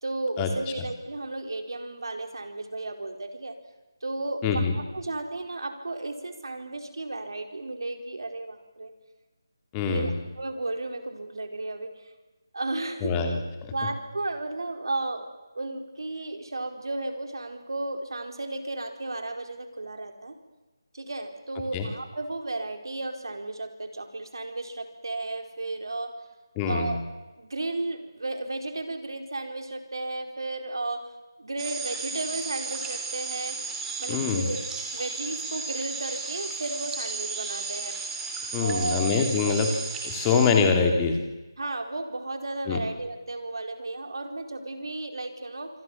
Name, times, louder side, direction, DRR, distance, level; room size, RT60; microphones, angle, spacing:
voice 1, 0.0-3.5 4.0-8.9 9.9-12.1 12.5-13.3 13.7-20.4 20.9-26.1 26.7-27.0 27.4-31.1 31.4-33.6 34.0-34.6 34.9-37.9 38.6-39.6 41.6-45.7, right 2 dB, 70° right, 5 dB, 4.6 m, -34 dB
voice 2, 4.4-4.7 9.7-10.1 13.0-13.7 21.7-21.9 26.6-26.9 34.1-34.5 38.5-39.7 40.0-41.2 42.7-42.8, left 5 dB, 15° left, 4 dB, 2.9 m, -24 dB
sound 1, 31.6-40.5, right 4 dB, 10° right, 3.2 m, -34 dB
26.5 x 24.5 x 7.4 m, 1.1 s
figure-of-eight pair, 165°, 2 cm